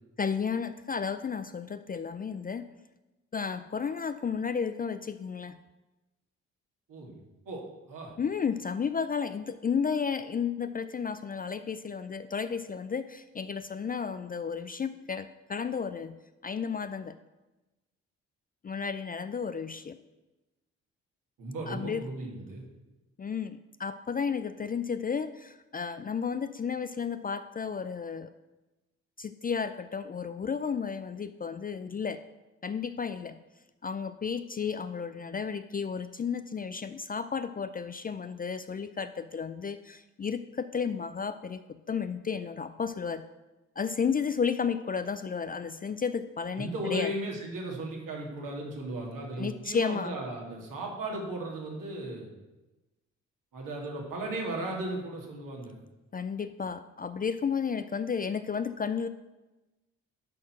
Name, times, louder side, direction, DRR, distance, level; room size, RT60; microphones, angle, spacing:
voice 1, 0.2-2.6 3.3-5.6 8.2-17.2 18.6-20.0 21.7-22.0 23.2-28.3 29.2-32.2 32.6-33.4 33.8-43.3 43.8-47.1 49.4-50.1 56.1-59.1, left 6 dB, 25° left, 12 dB, 0.4 m, -33 dB
voice 2, 7.5-8.1 21.4-22.6 46.6-52.3 53.5-55.8, right 1 dB, 60° right, -1 dB, 2.4 m, -36 dB
10.5 x 4.4 x 5.9 m, 1.1 s
hypercardioid pair, 45°, 36 cm